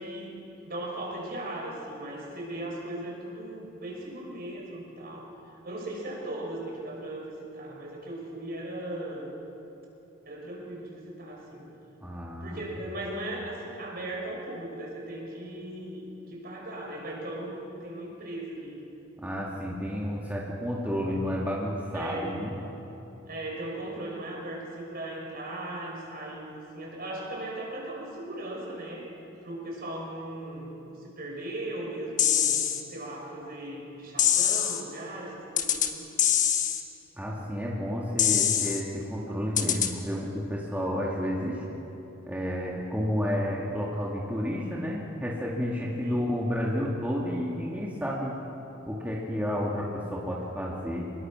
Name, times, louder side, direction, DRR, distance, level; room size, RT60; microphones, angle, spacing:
voice 1, 0.0-5.3 5.6-9.3 10.3-11.7 12.4-18.8 21.9-22.4 23.3-29.1 29.4-36.0 46.0-46.2, right 1 dB, 50° right, -1 dB, 5.5 m, -38 dB
voice 2, 12.0-12.6 19.2-22.5 37.2-41.6 42.3-48.4 48.9-51.1, equal, 10° right, -4 dB, 2.1 m, -31 dB
sound 1, 32.2-32.8 34.2-34.8 35.6-35.9 36.2-36.8 38.2-38.8 39.6-39.9, left 9 dB, 40° left, 1.4 m, -24 dB
25.0 x 21.5 x 6.3 m, 3.0 s
head